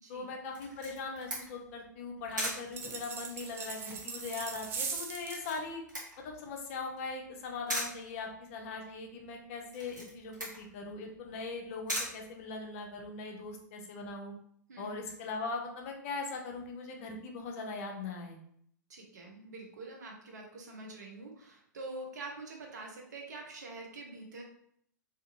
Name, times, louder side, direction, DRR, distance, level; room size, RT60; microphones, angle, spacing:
voice 1, 0.1-5.8 6.2-14.3 14.8-18.4, left 3 dB, 45° left, 2 dB, 0.6 m, -40 dB
Camera, 0.5-13.0, equal, 80° right, 1.2 m, -42 dB
sound 1, 2.7-5.5, right 5 dB, 20° right, 0.3 m, -40 dB
voice 2, 14.7-15.1 18.9-24.4, right 2 dB, 65° right, 0 dB, 0.8 m, -45 dB
2.7 x 2.5 x 2.6 m, 0.67 s
figure-of-eight pair, 100°, 10 cm